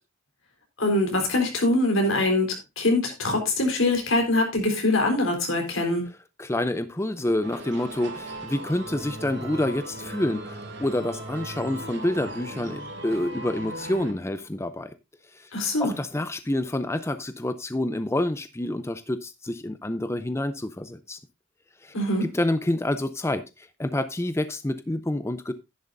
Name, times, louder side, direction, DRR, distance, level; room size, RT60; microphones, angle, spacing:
voice 1, 0.8-6.1 15.5-15.9 21.9-22.2, left 2 dB, 80° left, 4.2 m, -23 dB
voice 2, 6.4-15.0 15.3-15.5 15.8-21.2 21.8-21.9 22.2-25.5, left 1 dB, 15° left, 0.5 m, -28 dB
sound 1, 7.4-14.1, right 1 dB, 60° right, 2.5 m, -38 dB
11.5 x 10.5 x 2.6 m
head